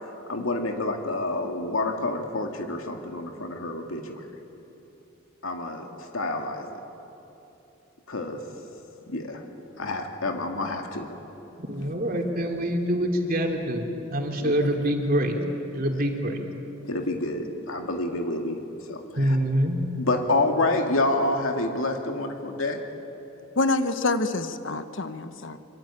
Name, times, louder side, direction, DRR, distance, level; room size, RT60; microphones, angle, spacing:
voice 1, 0.3-4.2 5.4-5.9 6.1-6.7 8.1-8.4 9.1-9.4 9.8-11.1 14.4-14.5 15.9-16.0 16.9-18.6 18.9-19.4 20.0-22.8, left 2 dB, 90° left, 3 dB, 2.2 m, -28 dB
voice 2, 11.6-13.8 14.1-15.4 15.7-16.4 19.2-19.8, equal, 45° right, 2 dB, 3.1 m, -25 dB
voice 3, 23.6-25.6, left 3 dB, 65° left, 10 dB, 1.2 m, -26 dB
25.0 x 24.5 x 8.9 m, 3.0 s
head